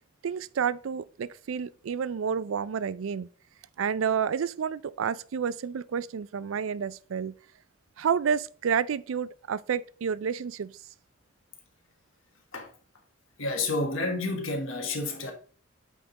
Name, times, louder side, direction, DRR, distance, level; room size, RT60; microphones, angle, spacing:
voice 1, 0.2-3.3 3.8-7.3 8.0-10.7, right 7 dB, 85° right, 0.4 m, -30 dB
voice 2, 13.4-15.3, left 2 dB, 85° left, 1.6 m, -30 dB
8.6 x 3.7 x 4.0 m
head